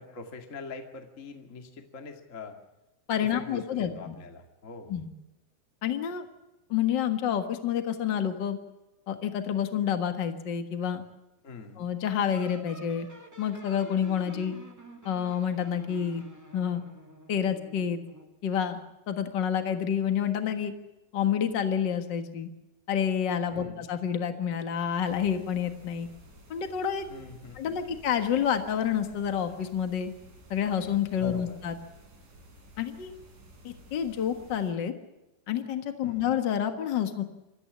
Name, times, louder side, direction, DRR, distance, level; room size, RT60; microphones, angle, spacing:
voice 1, 0.0-2.6 3.2-5.0 11.4-11.9 23.5-23.9 27.1-28.0 31.2-31.6 36.0-36.3, left 4 dB, 30° left, 4 dB, 1.6 m, -44 dB
voice 2, 3.1-4.1 4.9-5.1 5.8-6.2 6.7-8.6 9.1-11.0 11.8-13.1 13.4-14.5 15.0-16.2 16.5-16.8 17.3-18.0 18.4-18.8 19.1-20.7 21.1-22.5 22.9-26.1 26.5-27.1 27.5-30.1 30.5-31.8 32.8-33.1 33.6-34.9 35.5-37.2, left 8 dB, 80° left, 7 dB, 1.0 m, -28 dB
sound 1, 12.3-18.4, equal, 10° right, 0.8 m, -48 dB
sound 2, 25.0-34.7, right 1 dB, 50° right, 6.0 m, -53 dB
25.5 x 14.5 x 8.6 m, 0.98 s
omnidirectional pair, 4.6 m